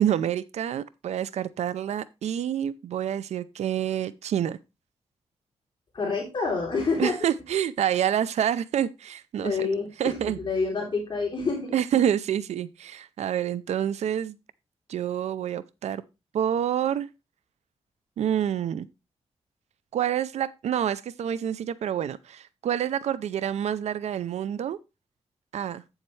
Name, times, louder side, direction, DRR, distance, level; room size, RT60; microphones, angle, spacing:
voice 1, 0.0-4.6 7.0-9.7 10.0-10.4 11.7-14.4 14.9-16.0 16.3-17.1 18.2-18.9 19.9-24.8 25.5-25.8, right 10 dB, 85° right, 0.5 m, -27 dB
voice 2, 5.9-7.2 9.4-11.7, left 4 dB, 45° left, 3.3 m, -28 dB
8.7 x 7.2 x 3.2 m
cardioid pair, 100°, 11 cm